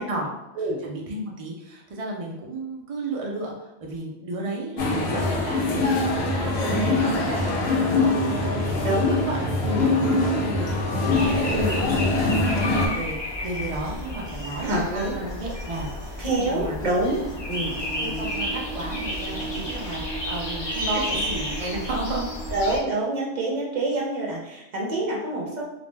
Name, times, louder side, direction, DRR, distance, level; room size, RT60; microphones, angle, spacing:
voice 1, 0.0-8.8 9.1-12.1 12.4-16.8 17.3-17.4 18.0-22.2, right 2 dB, 65° right, -2 dB, 0.3 m, -33 dB
sound 1, 4.8-12.9, left 2 dB, 70° left, 0.8 m, -23 dB
voice 2, 8.8-9.1 9.6-9.8 11.5-11.8 14.6-15.2 16.2-17.2 17.5-17.8 22.5-25.6, right 2 dB, 45° right, -3 dB, 0.7 m, -26 dB
sound 2, 11.1-22.8, equal, 45° left, 0.3 m, -32 dB
2.4 x 2.1 x 3.1 m, 0.89 s
omnidirectional pair, 1.2 m